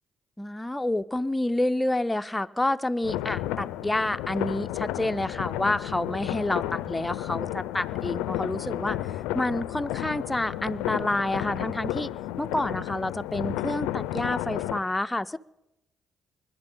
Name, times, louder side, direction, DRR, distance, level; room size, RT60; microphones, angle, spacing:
voice 1, 0.4-12.1 12.4-15.4, left 1 dB, 15° left, 12 dB, 0.5 m, -28 dB
sound 1, 3.0-14.8, left 14 dB, 85° left, 0.4 m, -32 dB
21.0 x 11.5 x 3.8 m, 0.87 s
supercardioid pair, 55°, 0 cm